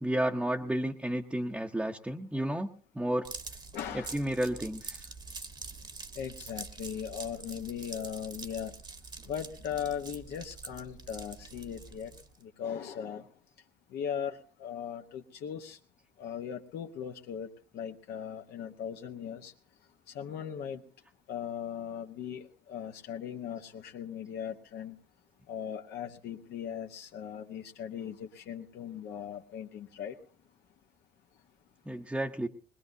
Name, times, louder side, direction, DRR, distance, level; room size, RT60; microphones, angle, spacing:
voice 1, 0.0-2.7 2.9-3.3 3.9-5.1 31.9-32.5, right 1 dB, 5° right, 1 dB, 0.8 m, -32 dB
sound 1, 3.2-12.4, right 4 dB, 25° right, 1.1 m, -45 dB
voice 2, 3.7-4.2 6.1-8.7 9.2-12.1 12.4-13.3 13.9-15.8 16.2-17.5 17.7-19.5 20.1-20.8 21.3-25.0 25.5-30.2, left 8 dB, 75° left, 2 dB, 1.1 m, -38 dB
20.5 x 20.5 x 2.7 m, 0.41 s
cardioid pair, 110°, 17 cm